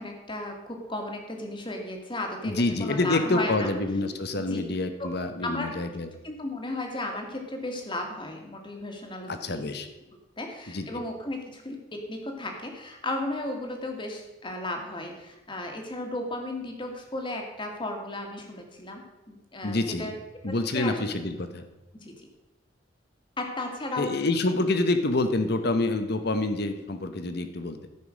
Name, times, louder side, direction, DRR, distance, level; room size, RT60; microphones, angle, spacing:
voice 1, 0.0-2.5 2.8-3.7 4.5-4.6 5.0-5.1 5.4-5.8 6.2-9.6 10.4-20.1 20.7-20.9 22.0-22.3 23.4-24.1, left 1 dB, 25° left, 2 dB, 1.8 m, -34 dB
voice 2, 2.4-6.1 9.3-9.9 10.7-11.0 19.6-20.2 20.4-21.7 24.0-27.8, left 2 dB, 55° left, 8 dB, 1.0 m, -27 dB
14.0 x 5.4 x 6.3 m, 1.0 s
head